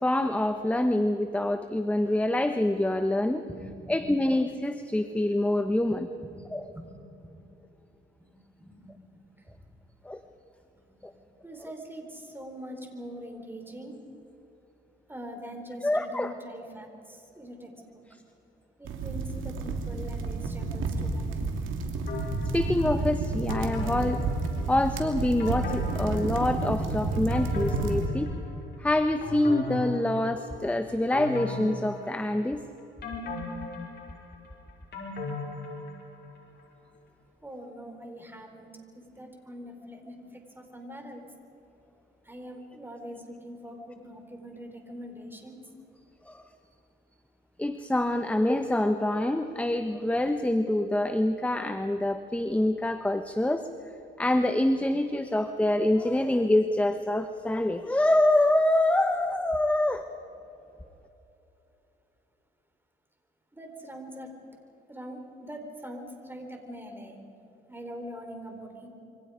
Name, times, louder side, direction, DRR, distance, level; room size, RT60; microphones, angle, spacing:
voice 1, 0.0-3.4 3.9-6.1 6.5-6.6 10.0-10.2 15.8-16.3 22.5-24.2 24.7-28.3 28.8-32.6 46.3-46.4 47.6-53.7 54.2-60.0, left 1 dB, 5° left, 8 dB, 1.0 m, -26 dB
voice 2, 3.5-4.1 6.2-6.9 7.3-7.5 8.6-9.2 11.0-11.1 11.4-14.0 15.1-18.0 18.8-21.4 21.7-21.8 37.4-38.7 38.9-41.3 42.2-45.6 63.5-64.3 64.9-67.2 67.7-68.9, equal, 10° right, 3 dB, 4.5 m, -43 dB
sound 1, 18.8-28.1, right 3 dB, 80° right, 2.9 m, -30 dB
sound 2, 22.1-22.9 23.5-24.9 25.4-26.7 27.1-28.7 29.2-30.5 31.1-32.6 33.0-36.3 36.6-36.7, left 3 dB, 60° left, 6.0 m, -37 dB
27.5 x 24.0 x 5.2 m, 2.9 s
cardioid pair, 90°, 20 cm